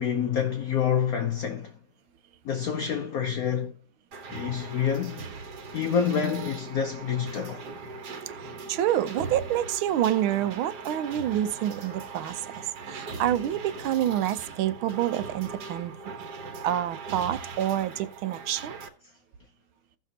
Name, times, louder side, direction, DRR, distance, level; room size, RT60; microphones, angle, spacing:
voice 1, 0.0-1.7 2.4-3.7 4.3-5.2 5.7-7.6, left 8 dB, 80° left, 0.8 m, -27 dB
sound 1, 4.1-18.9, right 4 dB, 55° right, 1.5 m, -40 dB
voice 2, 8.4-12.4 12.9-15.9 16.6-18.8, right 11 dB, 75° right, 1.4 m, -27 dB
16.0 x 5.8 x 2.8 m
omnidirectional pair, 2.4 m